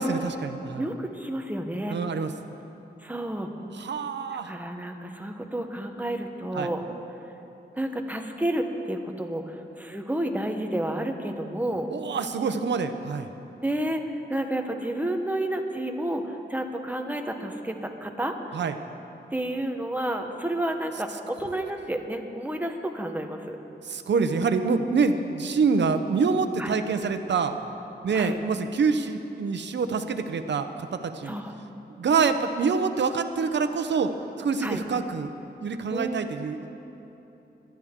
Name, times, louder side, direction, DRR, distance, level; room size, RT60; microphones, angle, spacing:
voice 1, 0.0-0.9 1.9-2.3 3.7-4.5 6.5-6.7 11.9-13.3 18.5-18.7 23.9-27.5 28.0-31.4 32.0-34.1 34.4-35.3 35.6-36.7, right 5 dB, 90° right, 8 dB, 0.7 m, -26 dB
voice 2, 0.8-2.0 3.0-3.5 4.3-6.8 7.7-11.9 13.6-18.4 19.3-23.6 26.6-26.8 28.1-28.4 31.2-31.5 34.6-34.8 35.9-36.4, right 1 dB, 10° right, 4 dB, 0.9 m, -30 dB
23.0 x 10.5 x 3.7 m, 3.0 s
wide cardioid pair, 145°, 18 cm